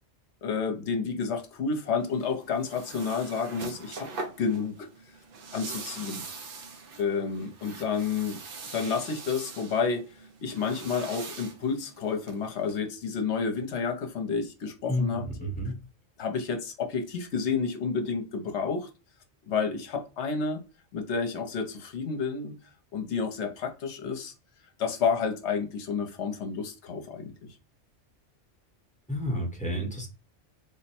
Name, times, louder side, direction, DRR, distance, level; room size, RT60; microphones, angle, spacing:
voice 1, 0.4-4.1 4.4-4.9 5.5-6.2 7.0-8.4 8.7-10.0 10.4-15.5 16.2-18.9 19.5-20.6 20.9-22.6 22.9-24.3 24.8-27.3, left 5 dB, 70° left, 1.0 m, -30 dB
sound 1, 2.0-12.8, right 4 dB, 55° right, 0.8 m, -43 dB
voice 2, 14.9-15.8 29.1-30.1, equal, 5° left, 0.9 m, -30 dB
3.5 x 2.1 x 4.2 m
omnidirectional pair, 1.2 m